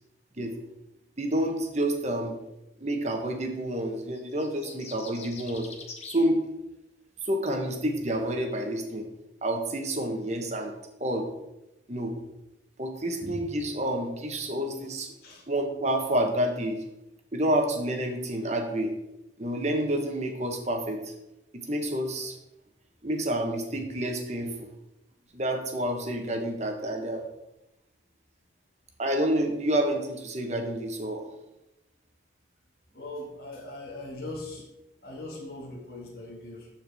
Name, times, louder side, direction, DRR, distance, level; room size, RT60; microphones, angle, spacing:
voice 1, 1.2-2.4 2.8-5.7 6.1-6.4 7.2-9.1 9.4-10.7 11.0-11.3 11.9-12.1 12.8-15.1 15.5-16.8 17.3-18.9 19.4-21.1 21.5-22.3 23.0-24.7 25.3-27.2 29.0-31.2, right 1 dB, 40° right, 4 dB, 1.1 m, -29 dB
sound 1, 4.1-6.2, left 4 dB, 35° left, 1.1 m, -44 dB
voice 2, 32.9-34.7 35.0-36.7, left 2 dB, 55° left, -4 dB, 1.9 m, -40 dB
13.0 x 4.5 x 3.5 m, 0.92 s
head